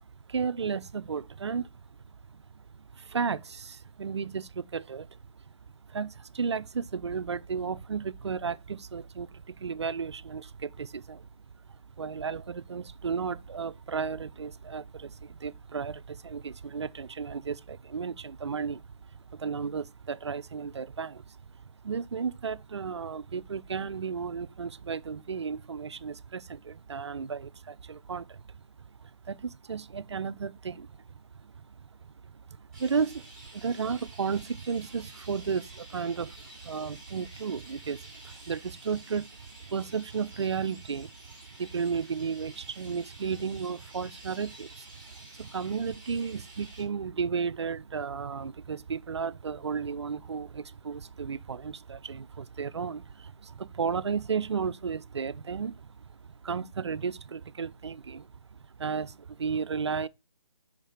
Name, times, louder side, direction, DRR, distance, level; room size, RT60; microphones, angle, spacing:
voice 1, 0.3-1.7 2.9-5.2 5.9-11.3 12.0-18.8 19.1-21.4 21.8-28.4 29.0-30.9 31.4-31.5 31.8-31.9 32.3-32.4 32.7-39.3 39.7-41.1 41.6-56.0 56.4-58.3 58.8-60.1, right 6 dB, 60° right, 0.5 m, -34 dB
Chirp tweet, 32.7-46.8, right 1 dB, 5° left, 3.1 m, -51 dB
5.7 x 4.9 x 4.3 m
figure-of-eight pair, 160°, 16 cm